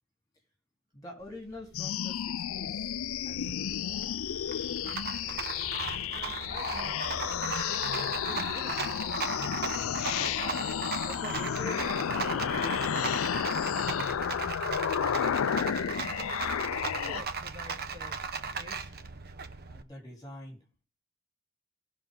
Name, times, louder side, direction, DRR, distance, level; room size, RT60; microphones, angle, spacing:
voice 1, 0.9-2.9 3.3-3.9 10.1-10.7 11.1-13.1 19.7-20.6, left 2 dB, 15° left, 2 dB, 3.9 m, -45 dB
Rattle, 1.2-19.8, right 5 dB, 45° right, 0.9 m, -37 dB
sound 1, 1.7-17.2, left 8 dB, 70° left, 0.4 m, -32 dB
voice 2, 6.1-7.1 7.4-8.9 14.9-16.4 16.9-18.2 18.5-18.9, right 1 dB, 20° right, -1 dB, 4.8 m, -48 dB
18.5 x 6.2 x 3.8 m, 0.33 s
head